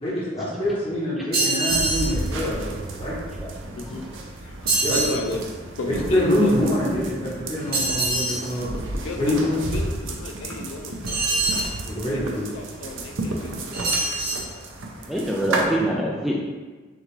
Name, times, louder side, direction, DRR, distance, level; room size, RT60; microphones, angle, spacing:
voice 1, 0.0-3.2 4.8-5.0 6.1-8.7 9.2-9.6 11.8-12.5, left 1 dB, 30° left, -7 dB, 1.2 m, -25 dB
sound 1, 1.3-2.1 4.7-5.2 7.7-8.4 11.1-11.7 13.7-14.5, right 2 dB, 50° right, 1.2 m, -24 dB
sound 2, 1.7-15.6, right 2 dB, 85° right, 0.6 m, -32 dB
voice 2, 3.7-4.1 4.4-5.4 5.8-6.6 9.0-11.6 12.0-14.7, left 3 dB, 85° left, 3 dB, 0.4 m, -34 dB
voice 3, 15.1-16.4, right 1 dB, ahead, -4 dB, 0.3 m, -25 dB
6.3 x 2.5 x 3.2 m, 1.3 s
head